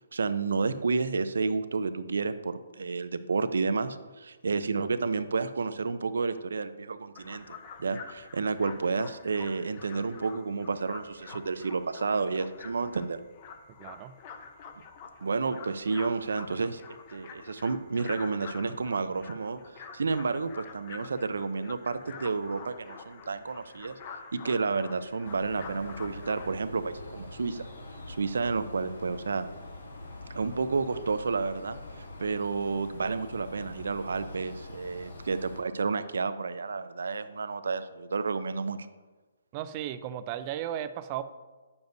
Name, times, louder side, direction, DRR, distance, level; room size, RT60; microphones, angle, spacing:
voice 1, 0.1-13.2 15.2-16.8 17.1-24.0 24.3-27.7 28.1-29.5 30.3-38.8, right 4 dB, 85° right, 12 dB, 0.5 m, -31 dB
sound 1, 7.2-26.6, left 6 dB, 25° left, 0.5 m, -47 dB
voice 2, 13.8-14.2 39.5-41.2, right 11 dB, 25° right, 11 dB, 0.3 m, -35 dB
sound 2, 25.2-35.6, left 2 dB, 75° left, 1.4 m, -44 dB
9.2 x 7.0 x 2.6 m, 1.3 s
hypercardioid pair, 170°, 0 cm